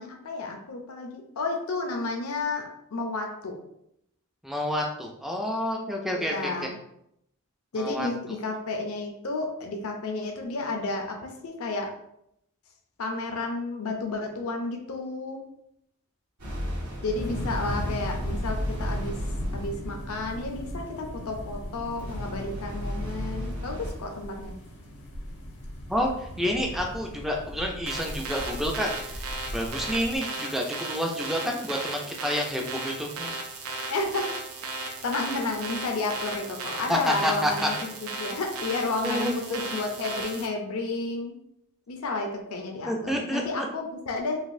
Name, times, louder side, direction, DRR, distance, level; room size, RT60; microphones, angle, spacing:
voice 1, 0.0-2.6 2.9-3.5 6.1-6.7 7.7-11.9 13.0-15.4 17.0-19.2 19.5-24.5 33.9-34.3 34.8-41.3 41.9-44.4, left 3 dB, 70° left, 2 dB, 0.5 m, -32 dB
voice 2, 4.4-6.7 7.7-8.1 25.9-29.2 29.5-33.3 36.9-37.7 39.0-39.6 42.9-43.7, equal, ahead, 1 dB, 0.4 m, -29 dB
sound 1, 16.4-19.7 22.0-24.0, equal, 90° right, 1.4 m, -33 dB
sound 2, 17.1-30.2, equal, 90° left, 0.9 m, -38 dB
sound 3, 27.9-40.5, right 3 dB, 70° right, 0.5 m, -36 dB
4.0 x 2.5 x 2.5 m, 0.77 s
head